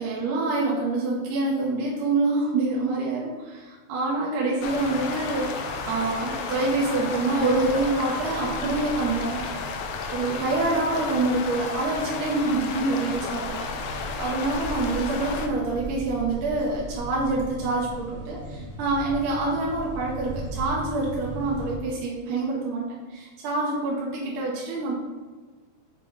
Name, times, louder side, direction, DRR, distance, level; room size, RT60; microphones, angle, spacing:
voice 1, 0.0-9.4 10.1-24.9, right 2 dB, 80° right, -4 dB, 2.4 m, -26 dB
sound 1, 4.6-15.5, left 5 dB, 80° left, 1.6 m, -33 dB
sound 2, 4.6-21.8, right 1 dB, 35° right, 0.8 m, -38 dB
6.5 x 4.1 x 3.8 m, 1.4 s
omnidirectional pair, 3.6 m